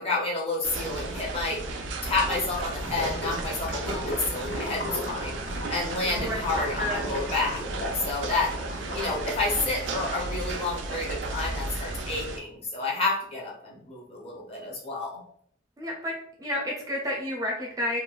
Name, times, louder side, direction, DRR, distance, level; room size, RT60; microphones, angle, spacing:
voice 1, 0.0-1.6 2.0-5.4 5.7-7.6 7.9-8.5 8.9-15.2, left 3 dB, 30° left, -3 dB, 0.7 m, -30 dB
sound 1, 0.6-12.4, right 2 dB, 85° right, 0.4 m, -34 dB
Gurgling / Liquid, 2.7-10.5, left 1 dB, 55° left, 0.9 m, -38 dB
voice 2, 6.1-7.1 8.7-9.2 15.8-18.0, left 1 dB, 20° right, -1 dB, 0.4 m, -31 dB
3.0 x 2.1 x 2.3 m, 0.65 s
head